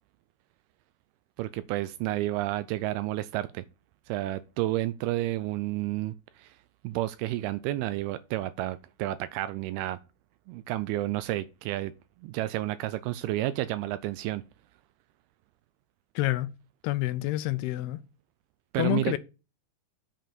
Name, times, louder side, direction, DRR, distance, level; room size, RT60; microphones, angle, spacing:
voice 1, 1.4-3.6 4.1-6.5 6.8-10.0 10.5-11.9 12.2-14.4 18.7-19.2, right 15 dB, 80° right, 2.3 m, -31 dB
voice 2, 16.2-16.5 16.8-18.0 18.8-19.2, left 16 dB, 80° left, 2.6 m, -28 dB
7.4 x 5.2 x 5.9 m
omnidirectional pair, 4.7 m